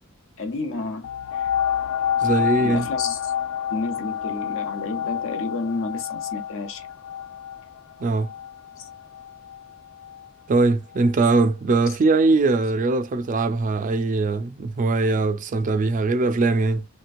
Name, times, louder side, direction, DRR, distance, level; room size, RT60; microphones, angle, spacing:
voice 1, 0.4-1.5 2.2-3.3 3.7-6.9 8.8-8.9 11.9-12.0, left 3 dB, 65° left, 0.7 m, -31 dB
sound 1, 1.0-10.3 10.9-11.0, left 9 dB, 85° left, 0.3 m, -29 dB
voice 2, 2.2-2.9 8.0-8.3 10.5-16.9, right 3 dB, 40° right, 0.4 m, -21 dB
3.2 x 2.9 x 2.4 m
head